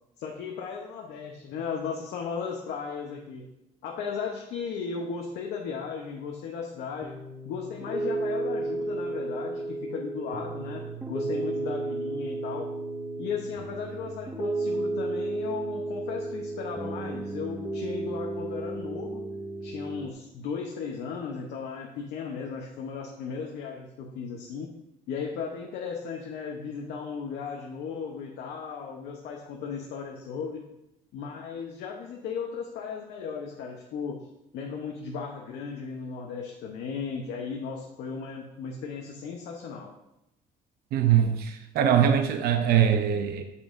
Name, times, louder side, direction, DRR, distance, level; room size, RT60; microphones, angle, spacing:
voice 1, 0.2-3.4 3.8-7.1 7.4-12.7 13.2-19.2 19.6-24.7 25.1-30.6 31.1-34.3 34.5-39.9, left 6 dB, 80° left, 0 dB, 0.9 m, -36 dB
Piano, 7.0-20.1, right 2 dB, 10° right, 0.7 m, -33 dB
voice 2, 40.9-43.4, right 9 dB, 70° right, 7 dB, 0.6 m, -22 dB
8.4 x 7.0 x 2.6 m, 0.86 s
cardioid pair, 110°, 17 cm